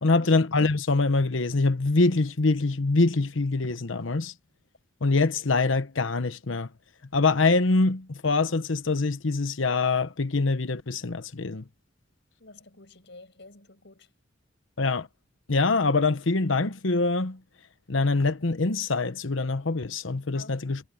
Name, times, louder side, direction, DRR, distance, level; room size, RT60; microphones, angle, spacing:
voice 1, 0.0-4.3 5.0-6.7 7.1-11.6 14.8-15.1 15.5-17.4 17.9-20.8, left 3 dB, 80° left, 1.0 m, -24 dB
voice 2, 12.4-14.1 20.3-20.8, left 2 dB, 60° left, 6.1 m, -50 dB
head